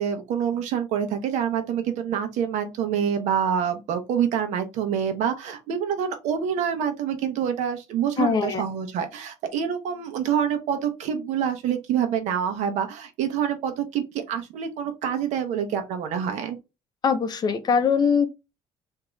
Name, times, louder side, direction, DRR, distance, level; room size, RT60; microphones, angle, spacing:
voice 1, 0.0-16.6, right 8 dB, 85° right, 1.0 m, -26 dB
voice 2, 8.2-8.6 17.0-18.3, left 6 dB, 35° left, 0.7 m, -22 dB
3.6 x 2.8 x 3.1 m
cardioid pair, 150°, 12 cm